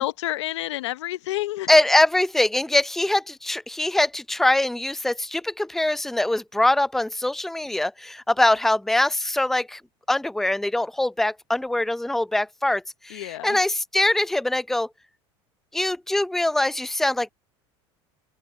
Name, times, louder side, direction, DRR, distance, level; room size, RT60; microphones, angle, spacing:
voice 1, 0.0-1.7 13.1-13.6, left 16 dB, 80° left, 0.9 m, -29 dB
voice 2, 1.7-9.8 10.1-14.9 15.7-17.3, left 1 dB, ahead, 0.6 m, -23 dB
open air
hypercardioid pair, 90°, 15 cm